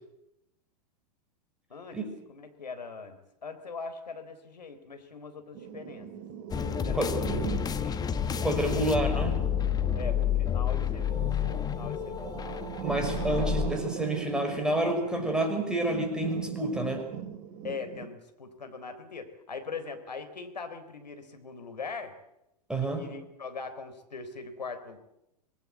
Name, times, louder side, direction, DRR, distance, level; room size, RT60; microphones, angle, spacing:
voice 1, 2.3-6.1 6.7-8.0 8.5-9.3 10.0-11.2 11.6-12.6 13.3-13.9 17.6-22.1 22.8-25.0, left 4 dB, 80° left, 8 dB, 3.8 m, -41 dB
sound 1, 5.5-18.1, right 8 dB, 40° right, 2.4 m, -39 dB
sound 2, 6.5-13.7, left 9 dB, 20° left, 1.3 m, -30 dB
voice 2, 8.4-9.4 12.8-17.0 22.7-23.1, right 1 dB, 5° right, 4 dB, 6.2 m, -29 dB
25.5 x 20.0 x 8.1 m, 0.88 s
figure-of-eight pair, 100°, 21 cm